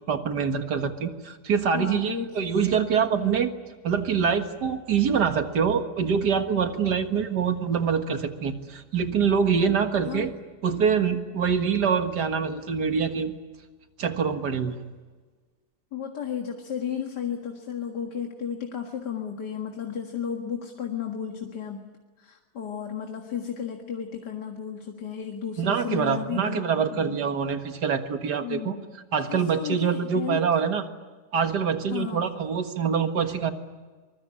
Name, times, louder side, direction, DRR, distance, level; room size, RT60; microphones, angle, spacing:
voice 1, 0.0-3.5 3.8-10.3 10.6-13.4 14.0-14.8 25.6-28.7 29.1-30.8 31.3-33.5, right 6 dB, 90° right, 7 dB, 2.2 m, -25 dB
voice 2, 1.7-3.5 10.1-10.3 15.9-21.9 22.2-27.2 28.4-28.8 29.2-30.4 31.9-32.4, left 8 dB, 85° left, 3 dB, 2.4 m, -34 dB
24.5 x 22.0 x 9.9 m, 1.4 s
omnidirectional pair, 1.7 m